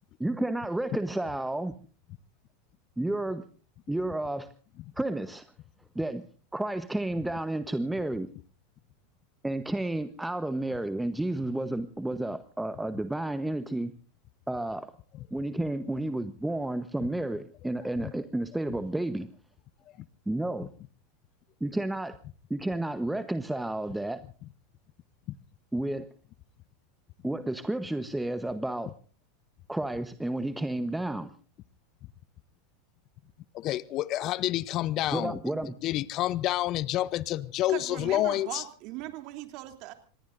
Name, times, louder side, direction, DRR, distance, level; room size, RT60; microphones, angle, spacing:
voice 1, 0.2-1.7 3.0-3.5 3.9-4.5 5.0-5.5 5.9-6.2 6.5-8.3 9.4-13.9 14.5-14.9 15.3-19.3 20.3-20.7 21.6-22.1 22.5-24.2 25.7-26.1 27.2-28.9 29.7-31.3 35.1-35.8, right 1 dB, 5° right, 1.0 m, -31 dB
voice 2, 33.5-35.4 35.8-38.6, left 14 dB, 45° left, 0.7 m, -28 dB
voice 3, 37.7-39.9, right 16 dB, 55° right, 2.9 m, -39 dB
26.5 x 20.0 x 2.6 m
hypercardioid pair, 95°, 0 cm